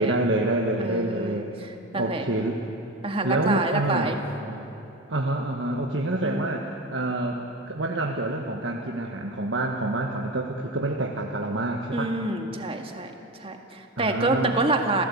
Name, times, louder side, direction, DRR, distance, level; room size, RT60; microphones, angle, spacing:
voice 1, 0.0-1.5 2.0-2.6 3.2-4.7 5.1-12.1 14.0-14.6, right 2 dB, 75° right, 1 dB, 1.5 m, -27 dB
voice 2, 0.8-2.3 3.0-4.2 6.2-6.6 11.9-13.1 13.4-15.0, right 2 dB, 30° right, 4 dB, 1.8 m, -27 dB
28.5 x 16.5 x 8.5 m, 2.9 s
head